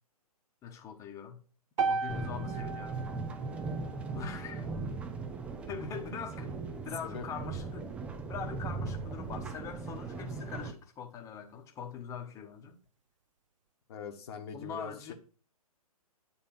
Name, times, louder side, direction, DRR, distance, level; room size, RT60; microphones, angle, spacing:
voice 1, 0.6-1.4 1.8-3.0 4.1-4.7 5.7-6.5 6.8-7.9 8.3-12.8 14.5-15.1, left 6 dB, 15° left, 1.0 m, -42 dB
sound 1, 1.8-5.9, right 4 dB, 55° right, 0.6 m, -37 dB
sound 2, 2.1-10.7, right 4 dB, 5° right, 0.4 m, -38 dB
voice 2, 13.9-15.1, left 6 dB, 40° left, 1.1 m, -42 dB
8.9 x 3.5 x 6.2 m
figure-of-eight pair, 120°, 20 cm